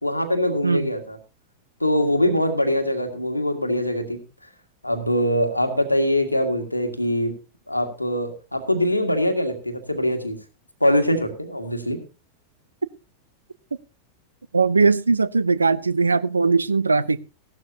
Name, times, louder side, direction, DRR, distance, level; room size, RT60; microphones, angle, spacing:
voice 1, 0.0-1.2 1.8-4.2 4.8-7.3 7.7-10.4 10.8-12.0, equal, 85° left, 1.8 m, -23 dB
voice 2, 14.5-17.2, right 4 dB, 80° right, 0.5 m, -19 dB
16.0 x 12.0 x 2.8 m
figure-of-eight pair, 90°, 0 cm